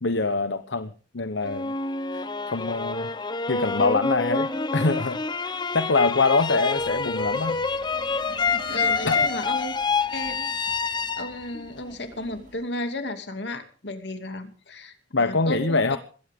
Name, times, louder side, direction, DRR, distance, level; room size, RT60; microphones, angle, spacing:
voice 1, 0.0-1.7 2.1-3.1 3.5-4.5 4.7-7.6 9.0-9.3 15.1-16.0, left 3 dB, 80° left, 10 dB, 1.1 m, -24 dB
sound 1, 1.4-12.5, left 4 dB, 25° left, 1.0 m, -27 dB
Laughter, 6.8-12.5, right 1 dB, 45° right, 3.9 m, -47 dB
voice 2, 8.7-9.7 10.1-10.5 10.8-16.0, left 1 dB, 65° left, 7 dB, 2.6 m, -34 dB
21.5 x 17.5 x 3.7 m, 0.40 s
head